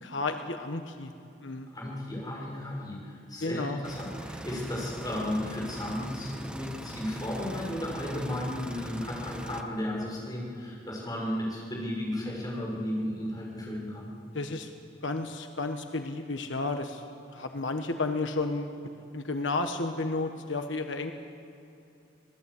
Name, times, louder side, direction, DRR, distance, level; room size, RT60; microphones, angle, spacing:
voice 1, 0.0-1.1 1.4-1.7 3.4-3.8 14.3-14.7 15.0-17.0 17.3-18.8 19.1-21.1, left 3 dB, 85° left, 6 dB, 1.3 m, -32 dB
voice 2, 1.7-14.1, left 1 dB, 20° left, -3 dB, 6.5 m, -34 dB
sound 1, 3.8-9.6, right 1 dB, 5° right, 0.9 m, -41 dB
26.0 x 18.5 x 8.4 m, 2.6 s
head